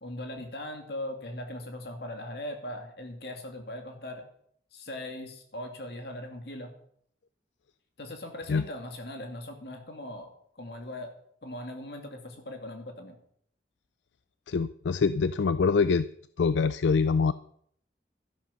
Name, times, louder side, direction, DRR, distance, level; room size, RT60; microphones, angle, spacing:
voice 1, 0.0-4.3 4.7-6.7 8.0-11.1 11.4-13.2, left 1 dB, 60° left, 4 dB, 2.6 m, -39 dB
voice 2, 14.5-16.1 16.4-17.3, left 5 dB, 80° left, 15 dB, 0.4 m, -24 dB
12.5 x 11.0 x 5.7 m, 0.65 s
head